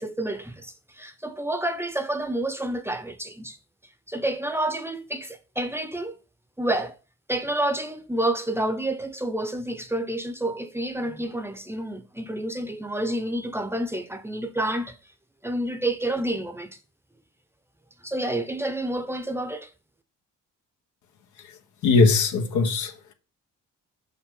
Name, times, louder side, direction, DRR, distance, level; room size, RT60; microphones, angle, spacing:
voice 1, 0.0-3.6 4.1-6.2 6.6-6.9 7.3-15.0 15.4-16.7 18.0-19.7, right 1 dB, 10° right, 0.8 m, -29 dB
voice 2, 21.8-23.1, left 4 dB, 80° left, 1.1 m, -21 dB
6.3 x 5.6 x 3.8 m
cardioid pair, 90°, 30 cm